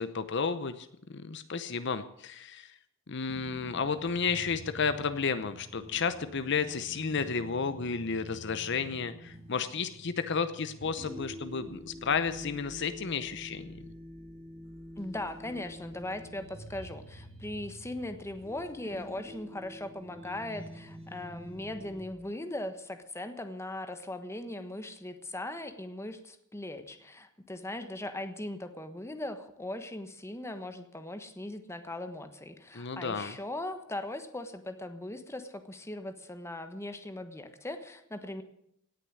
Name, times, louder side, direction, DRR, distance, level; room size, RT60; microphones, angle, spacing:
voice 1, 0.0-2.7 3.1-13.7 32.7-33.4, left 5 dB, 60° left, 11 dB, 0.8 m, -32 dB
sound 1, 3.3-22.0, equal, 30° right, 2.5 m, -47 dB
voice 2, 15.0-38.4, left 1 dB, 15° left, 8 dB, 1.3 m, -39 dB
18.0 x 6.7 x 9.6 m, 0.75 s
head